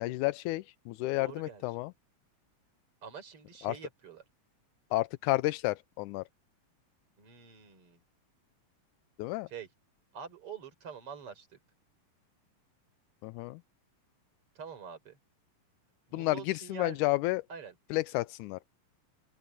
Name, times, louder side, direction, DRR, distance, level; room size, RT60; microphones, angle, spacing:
voice 1, 0.0-1.9 3.6-3.7 4.9-6.2 9.2-9.5 13.2-13.6 16.1-17.4 17.9-18.6, left 19 dB, 85° left, 1.8 m, -31 dB
voice 2, 1.2-1.6 3.0-4.2 7.2-8.0 9.5-9.7 10.1-11.5 14.6-15.2 16.1-17.0 17.5-17.8, right 7 dB, 40° right, 5.6 m, -45 dB
open air
omnidirectional pair, 4.0 m